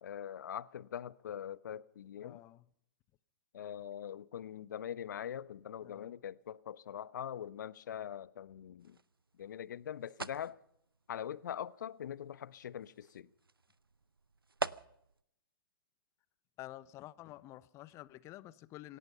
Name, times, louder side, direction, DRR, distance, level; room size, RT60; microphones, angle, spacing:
voice 1, 0.0-2.4 3.5-9.0 9.4-10.6 11.1-13.3, left 9 dB, 55° left, 1.0 m, -43 dB
voice 2, 2.2-2.7 5.8-6.2 16.6-19.0, left 15 dB, 25° left, 0.9 m, -50 dB
sound 1, 8.8-15.2, right 3 dB, 90° right, 0.7 m, -46 dB
27.0 x 17.5 x 5.6 m
figure-of-eight pair, 120°, 12 cm